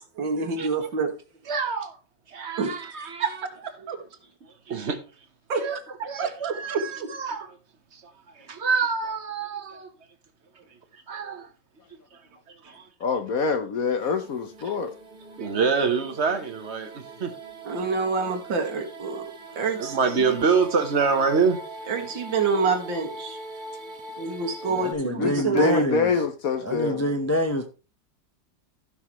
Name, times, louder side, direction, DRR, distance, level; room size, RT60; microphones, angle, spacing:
voice 1, 0.2-1.1 2.6-2.8 3.2-4.0 5.5-5.6 6.2-7.1 12.7-12.8 15.4-15.5 17.6-19.3 19.6-20.3 21.9-23.4 24.2-25.8, right 4 dB, 85° right, 2.5 m, -28 dB
voice 2, 1.5-2.0 2.3-3.4 4.7-5.0 5.5-5.8 6.1-7.5 7.9-9.9 10.9-11.5 12.5-12.9 15.4-17.3 19.7-21.6, right 5 dB, 45° right, 1.2 m, -26 dB
voice 3, 13.0-14.9 25.2-27.0, left 4 dB, 55° left, 1.2 m, -25 dB
sound 1, 14.0-24.9, right 2 dB, 25° right, 1.8 m, -42 dB
voice 4, 24.7-26.1 26.6-27.7, equal, 20° left, 0.4 m, -26 dB
16.0 x 6.0 x 3.1 m
omnidirectional pair, 2.0 m